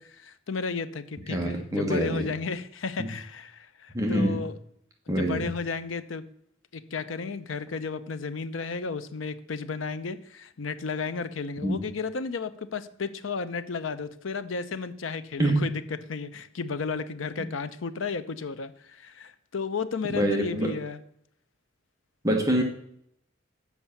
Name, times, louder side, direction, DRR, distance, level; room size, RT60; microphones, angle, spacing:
voice 1, 0.0-4.5 5.1-6.2 6.7-15.8 16.1-21.0, left 4 dB, 80° left, 12 dB, 0.6 m, -33 dB
voice 2, 1.3-2.3 3.0-3.1 3.9-4.4 5.1-5.5 11.6-11.9 15.4-15.6 20.1-20.7 22.2-22.6, right 1 dB, 15° right, 2 dB, 1.1 m, -25 dB
7.3 x 5.4 x 7.1 m, 0.72 s
head